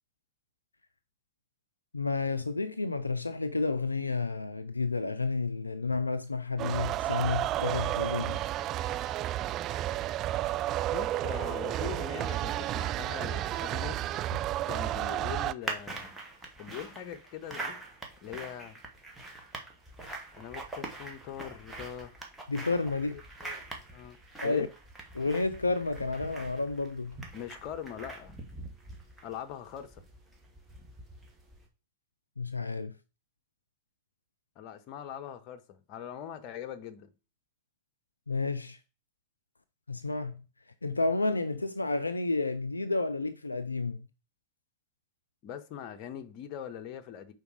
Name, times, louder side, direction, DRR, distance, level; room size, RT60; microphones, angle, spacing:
voice 1, 1.9-8.4 22.5-23.2 24.4-24.7 25.1-27.2 32.4-32.9 38.3-38.8 39.9-40.4 40.8-44.1, left 3 dB, 90° left, 0.3 m, -31 dB
sound 1, 6.6-15.5, right 13 dB, 40° right, 0.3 m, -31 dB
voice 2, 10.9-14.0 14.6-16.2 16.6-17.8 18.2-18.8 20.3-22.2 23.4-23.6 23.9-24.2 24.4-24.7 27.3-28.4 29.2-30.0 34.6-37.1 45.4-47.3, left 9 dB, 45° left, 0.9 m, -42 dB
sound 2, 15.6-31.7, right 2 dB, 10° right, 1.6 m, -44 dB
5.1 x 4.0 x 4.9 m
figure-of-eight pair, 95°, 0 cm